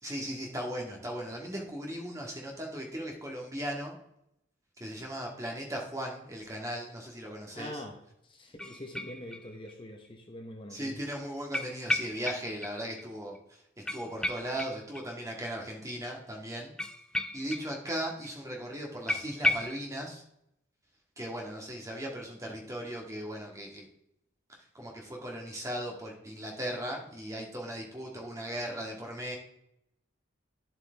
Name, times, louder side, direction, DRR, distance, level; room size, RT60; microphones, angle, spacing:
voice 1, 0.0-4.0 4.8-7.8 10.7-13.6 13.9-16.7 17.3-20.2 21.2-23.9 24.7-29.4, equal, 15° right, 0 dB, 1.7 m, -37 dB
voice 2, 7.5-8.0 8.2-11.0, left 1 dB, 25° left, 3 dB, 0.9 m, -44 dB
sound 1, 8.6-9.7 10.0-10.1 11.5-12.7 13.0-13.1 13.3-13.4 13.9-15.4 16.8-18.0 18.2-18.3 18.6-18.7 19.1-19.8, left 1 dB, 5° left, 0.3 m, -33 dB
10.5 x 7.7 x 3.5 m, 0.78 s
head